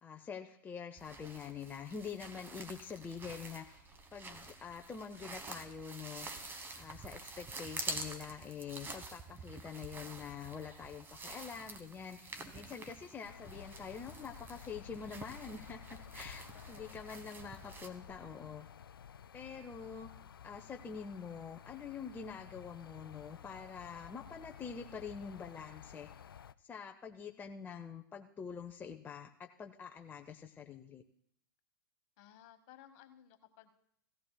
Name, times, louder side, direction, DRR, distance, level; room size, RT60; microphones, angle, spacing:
voice 1, 0.0-3.8 4.1-6.3 6.8-18.7 19.3-20.1 20.4-26.1 26.7-31.0, left 6 dB, 15° left, 4 dB, 0.6 m, -46 dB
sound 1, 1.0-17.9, right 3 dB, 20° right, 1.2 m, -48 dB
sound 2, 13.3-26.5, left 8 dB, 85° left, 0.4 m, -53 dB
voice 2, 16.5-17.0 32.2-33.7, left 11 dB, 45° left, 7 dB, 1.3 m, -59 dB
16.5 x 14.5 x 2.3 m, 0.70 s
hypercardioid pair, 105°, 12 cm